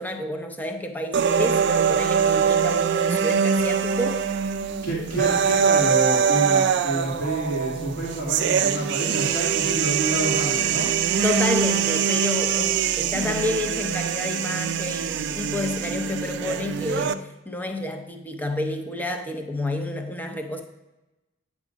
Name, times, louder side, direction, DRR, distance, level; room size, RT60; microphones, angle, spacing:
voice 1, 0.0-4.2 11.2-20.6, left 1 dB, 10° left, 4 dB, 0.5 m, -29 dB
sound 1, 1.1-17.1, right 7 dB, 55° right, 0.3 m, -23 dB
voice 2, 4.8-10.9, right 2 dB, 60° left, -9 dB, 2.4 m, -28 dB
9.0 x 3.6 x 5.1 m, 1.0 s
head